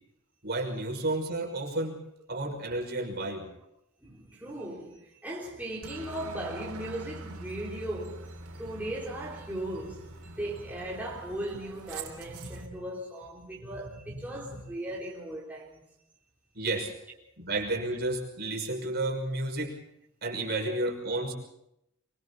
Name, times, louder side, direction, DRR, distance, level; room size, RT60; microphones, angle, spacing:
voice 1, 0.4-2.0 2.3-3.5 12.3-12.7 13.6-13.8 14.1-14.4 16.5-16.9 17.4-19.8 20.2-21.3, right 2 dB, 45° right, 5.8 m, -32 dB
voice 2, 4.0-15.8, right 1 dB, 5° right, 3.8 m, -38 dB
Aircraft, 5.8-12.7, right 3 dB, 80° right, 3.6 m, -44 dB
25.0 x 24.5 x 4.2 m
head